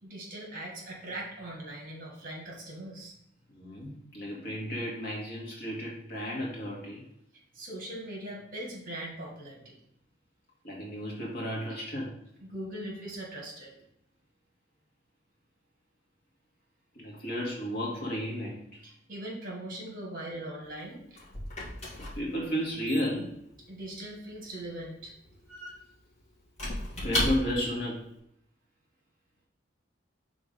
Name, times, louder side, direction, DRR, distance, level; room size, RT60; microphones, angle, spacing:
voice 1, 0.0-3.1 7.5-9.8 12.4-13.7 18.8-21.2 23.7-25.1, right 1 dB, 45° right, -1 dB, 1.8 m, -40 dB
voice 2, 3.5-7.0 10.6-12.1 17.0-18.8 22.1-23.4 27.0-28.0, equal, 55° left, -3 dB, 1.8 m, -33 dB
Squeak / Wood, 20.6-27.8, left 1 dB, 35° left, 1.7 m, -36 dB
5.2 x 3.8 x 4.9 m, 0.74 s
head